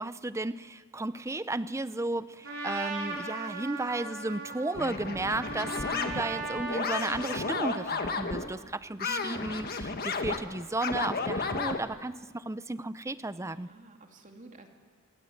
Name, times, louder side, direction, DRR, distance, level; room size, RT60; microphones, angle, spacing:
voice 1, 0.0-13.7, right 2 dB, 15° right, 15 dB, 0.6 m, -34 dB
Trumpet, 2.4-7.9, right 3 dB, 65° right, 4.3 m, -38 dB
sound 1, 4.7-8.5 9.0-11.8, left 4 dB, 45° left, 1.5 m, -33 dB
voice 2, 9.0-9.4 13.4-14.7, right 1 dB, 40° right, 3 dB, 2.6 m, -50 dB
26.0 x 18.5 x 8.0 m, 1.5 s
head